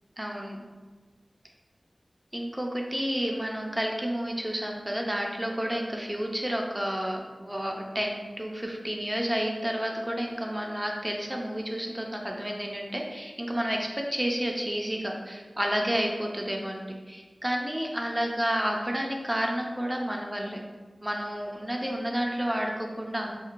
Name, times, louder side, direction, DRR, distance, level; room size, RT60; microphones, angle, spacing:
voice 1, 0.2-0.6 2.3-20.6 21.0-23.5, equal, 15° right, 1 dB, 0.4 m, -30 dB
3.0 x 2.9 x 2.4 m, 1.4 s
wide cardioid pair, 65°, 0 cm